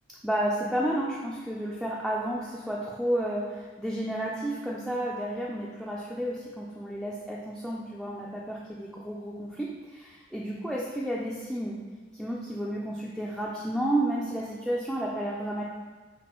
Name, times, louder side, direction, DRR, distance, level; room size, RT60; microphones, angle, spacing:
voice 1, 0.2-11.8 12.1-15.6, right 1 dB, ahead, -5 dB, 0.3 m, -31 dB
5.9 x 2.2 x 3.0 m, 1.4 s
head